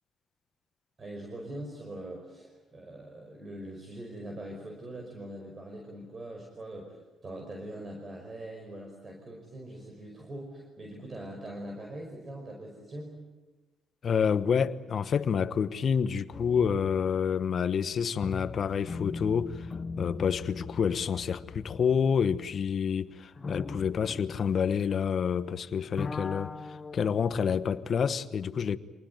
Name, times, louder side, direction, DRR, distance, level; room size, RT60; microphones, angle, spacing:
voice 1, 1.0-13.1, right 1 dB, 35° right, 5.3 m, -42 dB
voice 2, 14.0-19.7 20.0-28.8, left 7 dB, 55° left, 1.1 m, -28 dB
sound 1, 16.3-25.6 25.8-27.3, left 4 dB, 35° left, 1.3 m, -41 dB
25.5 x 19.5 x 9.2 m
cardioid pair, 80°, 0 cm